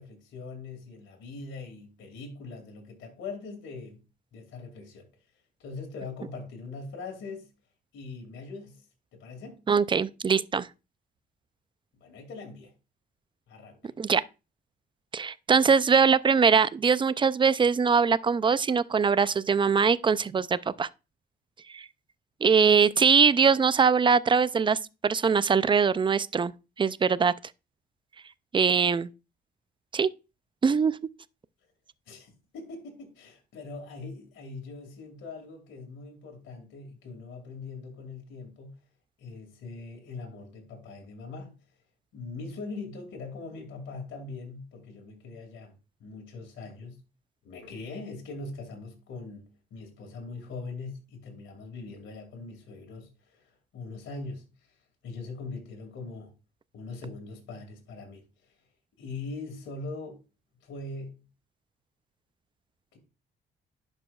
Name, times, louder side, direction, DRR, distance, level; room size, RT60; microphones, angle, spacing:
voice 1, 0.0-4.0 4.3-5.1 5.6-7.5 7.9-8.8 9.1-9.6 12.0-12.7 13.5-13.9 32.1-38.9 39.2-41.6 42.1-45.7 46.0-47.0 47.4-54.7 55.0-56.3 56.7-58.5 59.0-60.2 60.6-61.2 62.9-63.0, left 3 dB, 75° left, 2.3 m, -41 dB
voice 2, 9.7-10.7 14.0-14.2 15.1-20.9 21.7-21.9 22.4-26.5 26.8-27.3 28.5-29.1 29.9-30.1 30.6-31.0, right 5 dB, 25° right, 0.4 m, -22 dB
11.0 x 4.9 x 2.4 m
cardioid pair, 90°, 20 cm